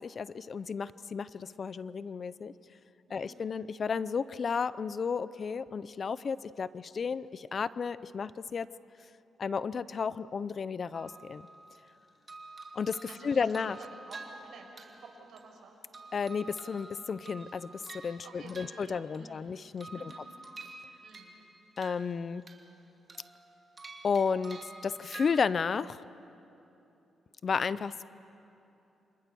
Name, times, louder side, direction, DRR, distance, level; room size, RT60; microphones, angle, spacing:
voice 1, 0.0-2.5 3.1-8.7 9.4-11.5 12.7-13.0 13.2-13.8 16.1-20.1 21.8-22.4 24.0-26.0 27.4-28.0, left 5 dB, 45° left, 17 dB, 0.6 m, -33 dB
voice 2, 3.1-3.4 13.1-15.8 18.2-19.6 20.0-20.2 21.0-21.3, right 3 dB, 70° right, 1 dB, 5.4 m, -51 dB
sound 1, 10.9-11.9 12.3-15.6 15.9-19.4 19.8-21.4 21.8-22.8 23.1-25.4, right 3 dB, 30° right, 2.8 m, -49 dB
29.0 x 26.0 x 7.0 m, 2.9 s
cardioid pair, 100°, 0 cm